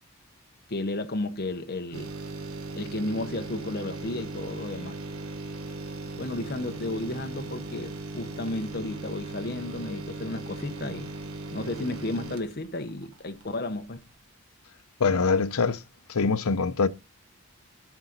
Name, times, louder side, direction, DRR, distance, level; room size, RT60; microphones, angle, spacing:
voice 1, 0.7-2.1 2.8-5.0 6.2-11.1 11.5-14.0, left 2 dB, 45° left, 0.9 m, -33 dB
sound 1, 1.9-13.5 13.9-14.0, right 2 dB, 75° right, 1.2 m, -38 dB
voice 2, 15.0-15.8 16.1-16.9, left 4 dB, 80° left, 0.7 m, -23 dB
12.0 x 5.0 x 4.0 m
head